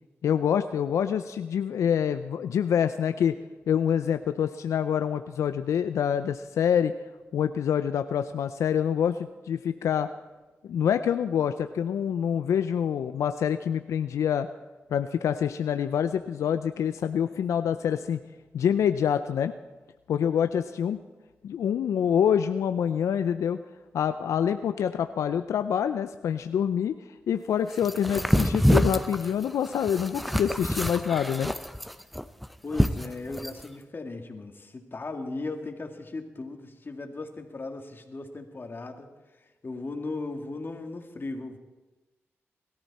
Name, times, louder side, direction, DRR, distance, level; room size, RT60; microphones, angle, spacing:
voice 1, 0.2-3.4 3.7-6.9 7.3-10.1 10.6-14.5 14.9-18.2 18.5-19.5 20.1-21.0 21.4-23.6 23.9-26.9 27.3-31.5, left 8 dB, 90° left, 10 dB, 0.5 m, -26 dB
sound 1, 27.8-33.6, equal, ahead, 0.8 m, -26 dB
voice 2, 32.6-39.1 39.4-41.6, left 3 dB, 45° left, 4 dB, 2.2 m, -37 dB
21.5 x 13.5 x 4.3 m, 1.2 s
cardioid pair, 50°, 5 cm